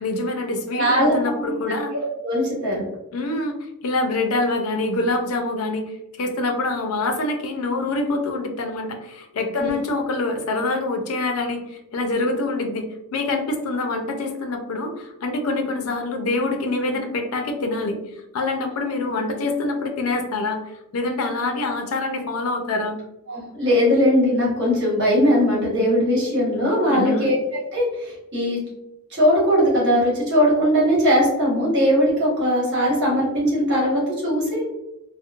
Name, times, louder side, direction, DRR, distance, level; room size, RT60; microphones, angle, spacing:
voice 1, 0.0-1.9 3.1-5.9 6.2-18.0 18.3-23.0 26.9-27.3, left 2 dB, 75° left, 4 dB, 0.4 m, -25 dB
voice 2, 0.7-1.5 1.9-2.9 9.6-9.7 23.3-27.4 27.7-28.6 29.1-34.6, equal, 55° right, -5 dB, 1.2 m, -20 dB
2.8 x 2.0 x 2.3 m, 0.91 s
head